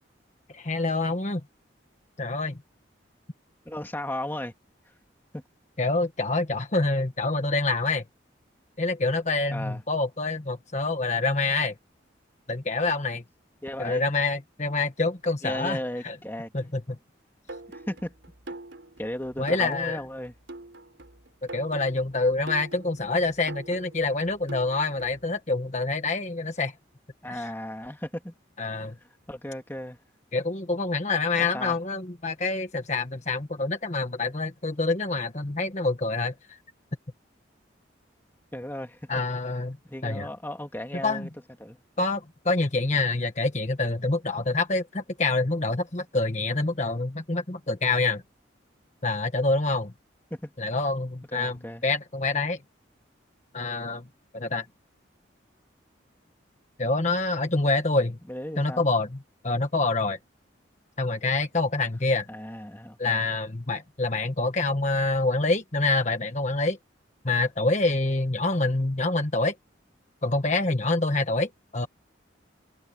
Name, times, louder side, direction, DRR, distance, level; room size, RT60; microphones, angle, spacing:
voice 1, 0.5-1.4 2.2-2.6 5.8-8.0 8.8-11.7 12.5-13.2 13.8-15.8 16.0-16.1 16.5-16.8 19.4-20.0 21.5-26.7 27.3-27.5 28.6-28.9 30.3-36.6 39.1-39.8 40.0-40.3 41.0-41.3 42.0-48.2 49.0-49.9 50.6-52.6 53.5-54.0 54.3-54.6 56.8-58.2 58.6-59.2 59.4-60.2 61.0-62.3 63.0-66.8 67.2-69.5 70.2-71.9, left 3 dB, 35° left, 1.4 m, -26 dB
voice 2, 3.7-4.5 5.3-5.4 9.5-9.8 13.6-14.0 15.4-16.5 17.7-18.1 19.0-20.4 27.2-28.3 28.7-28.9 29.3-30.0 31.4-31.8 38.5-39.2 39.8-41.3 41.6-41.8 50.3-50.5 51.3-51.8 58.3-58.9 62.3-63.3, left 1 dB, 10° left, 2.1 m, -35 dB
sound 1, 17.5-25.3, right 2 dB, 65° right, 3.7 m, -44 dB
head